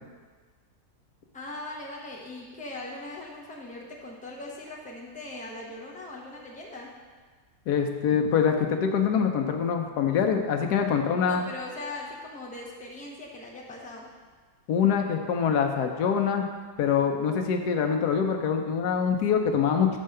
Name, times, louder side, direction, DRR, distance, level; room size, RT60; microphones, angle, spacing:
voice 1, 1.3-6.9 11.2-14.1, left 2 dB, 5° left, -3 dB, 0.9 m, -40 dB
voice 2, 7.7-11.5 14.7-16.5 16.8-19.9, left 7 dB, 85° left, 4 dB, 1.3 m, -24 dB
6.6 x 4.5 x 6.5 m, 1.4 s
omnidirectional pair, 1.6 m